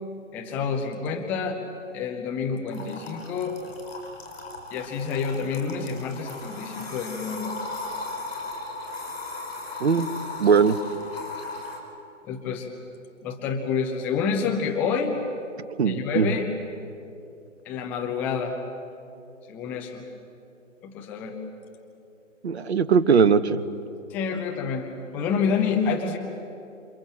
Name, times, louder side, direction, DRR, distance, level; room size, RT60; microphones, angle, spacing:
voice 1, 0.3-1.6 1.9-3.6 4.7-7.5 12.2-12.7 13.2-15.2 15.8-16.5 17.7-18.6 19.5-20.0 20.8-21.4 24.1-24.9 25.1-26.2, left 6 dB, 5° left, 3 dB, 0.6 m, -28 dB
sound 1, 2.7-11.8, left 3 dB, 50° left, 5.7 m, -37 dB
voice 2, 10.4-10.8 15.8-16.3 22.4-23.6, right 6 dB, 55° right, 13 dB, 1.3 m, -20 dB
28.0 x 28.0 x 7.5 m, 2.6 s
figure-of-eight pair, 140°, 38 cm